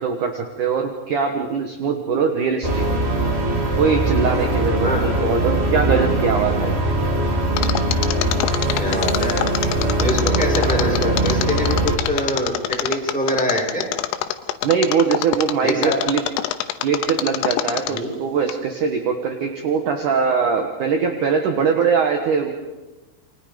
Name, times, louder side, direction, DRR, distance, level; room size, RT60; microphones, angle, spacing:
voice 1, 0.0-2.8 3.8-6.8 14.6-16.2 16.8-22.5, right 6 dB, 65° right, 4 dB, 2.0 m, -21 dB
sound 1, 2.6-12.0, right 1 dB, 90° right, 0.5 m, -21 dB
voice 2, 4.8-5.1 8.8-9.5 10.0-13.9 15.6-16.0 17.9-18.1, equal, ahead, -1 dB, 5.5 m, -24 dB
Mechanisms, 7.6-18.1 18.5-18.6, left 12 dB, 90° left, 3.6 m, -25 dB
29.0 x 25.5 x 5.2 m, 1.1 s
omnidirectional pair, 5.7 m